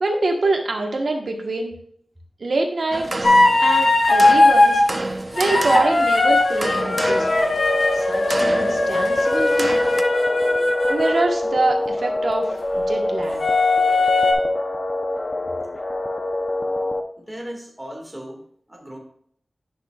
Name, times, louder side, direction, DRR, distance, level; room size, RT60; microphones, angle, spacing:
voice 1, 0.0-1.7 2.4-4.8 5.3-7.3 7.9-9.8 10.9-13.4, right 2 dB, 65° right, 2 dB, 1.2 m, -24 dB
sound 1, 2.9-10.0, right 2 dB, 35° right, 0.5 m, -31 dB
sound 2, 3.2-4.8 5.4-11.3 13.4-14.3, left 2 dB, 65° left, 1.1 m, -18 dB
sound 3, 6.9-17.0, left 1 dB, 35° left, 0.7 m, -25 dB
voice 2, 17.2-19.0, equal, 10° right, 0 dB, 1.9 m, -37 dB
10.0 x 5.9 x 2.4 m, 0.64 s
wide cardioid pair, 95°, 0 cm